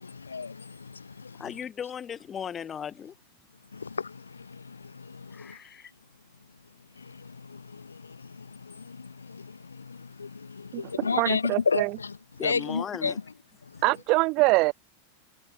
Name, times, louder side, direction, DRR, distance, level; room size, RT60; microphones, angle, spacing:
voice 1, 0.0-1.4 3.7-5.6 7.0-12.2 12.4-13.1 13.6-13.8, left 5 dB, 75° left, 0.5 m, -33 dB
voice 2, 1.3-3.1 5.3-5.9 12.4-13.2, left 8 dB, 25° left, 1.4 m, -37 dB
voice 3, 10.7-11.9 13.8-14.7, right 25 dB, 40° right, 0.3 m, -24 dB
figure-of-eight pair, 90°, 0 cm